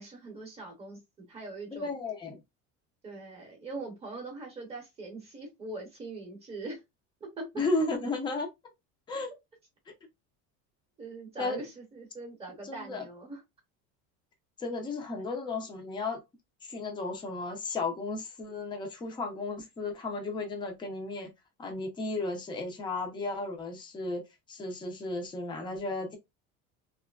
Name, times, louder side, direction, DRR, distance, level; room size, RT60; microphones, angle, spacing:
voice 1, 0.0-1.9 3.0-6.8 7.2-7.5 11.0-13.4, right 3 dB, 20° right, 0.7 m, -42 dB
voice 2, 1.7-2.4 7.6-8.5 9.1-9.3 9.9-10.0 11.4-11.6 12.7-13.0 14.6-16.2 16.7-21.3 21.6-24.2 24.5-26.2, left 3 dB, 15° left, 0.5 m, -34 dB
2.7 x 2.4 x 2.2 m
cardioid pair, 155°, 33 cm